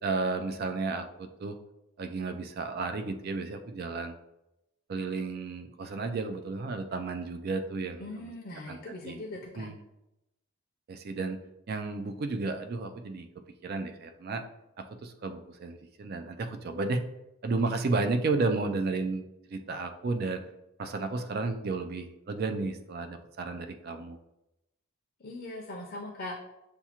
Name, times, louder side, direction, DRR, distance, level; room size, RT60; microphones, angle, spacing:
voice 1, 0.0-1.6 2.0-4.2 4.9-8.3 8.7-8.8 9.0-9.2 9.5-9.8 10.9-11.4 11.7-13.3 13.6-14.4 14.8-17.0 17.4-19.2 19.5-20.4 20.8-24.2, right 3 dB, 45° right, 7 dB, 0.3 m, -32 dB
voice 2, 8.0-9.7 25.2-26.4, left 2 dB, 40° left, -1 dB, 0.5 m, -40 dB
6.8 x 2.3 x 2.9 m, 0.91 s
head